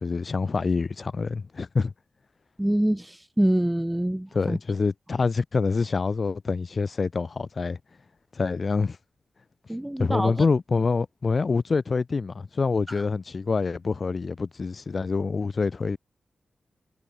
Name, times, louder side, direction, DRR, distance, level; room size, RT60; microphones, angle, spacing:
voice 1, 0.0-1.9 4.3-7.8 8.4-9.0 10.0-16.0, left 4 dB, 50° left, 2.7 m, -26 dB
voice 2, 2.6-4.6 9.7-10.5 12.9-13.0, right 1 dB, 10° right, 0.4 m, -25 dB
cardioid pair, 55°, 0 cm